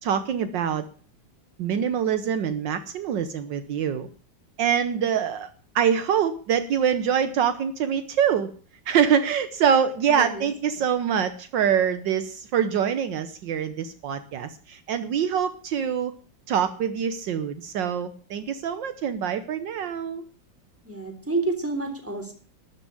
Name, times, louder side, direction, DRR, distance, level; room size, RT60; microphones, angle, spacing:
voice 1, 0.0-0.9 1.6-4.1 4.6-5.5 5.7-8.5 8.9-16.1 16.5-20.2, right 8 dB, 70° right, 11 dB, 1.5 m, -25 dB
voice 2, 10.1-10.5 20.8-22.3, right 3 dB, 5° right, 3 dB, 3.3 m, -29 dB
12.5 x 7.2 x 8.8 m, 0.42 s
omnidirectional pair, 2.1 m